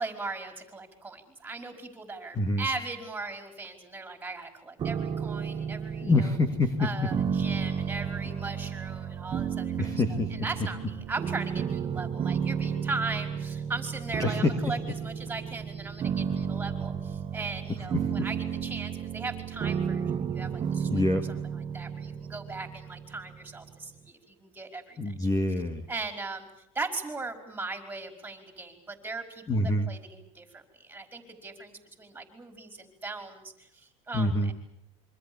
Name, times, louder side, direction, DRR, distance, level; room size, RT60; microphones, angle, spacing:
voice 1, 0.0-6.4 6.8-9.9 10.3-21.0 21.5-25.1 25.9-26.5 26.8-34.5, right 3 dB, 10° right, 6 dB, 5.2 m, -38 dB
sound 1, 4.8-23.8, right 7 dB, 25° right, 1.4 m, -33 dB
voice 2, 6.0-6.9 9.8-10.3 14.2-14.5 18.2-18.3 20.9-21.2 25.0-25.8 29.5-29.9 34.1-34.5, left 2 dB, 20° left, 7 dB, 2.2 m, -26 dB
27.0 x 25.0 x 7.2 m, 0.73 s
supercardioid pair, 140°, 17 cm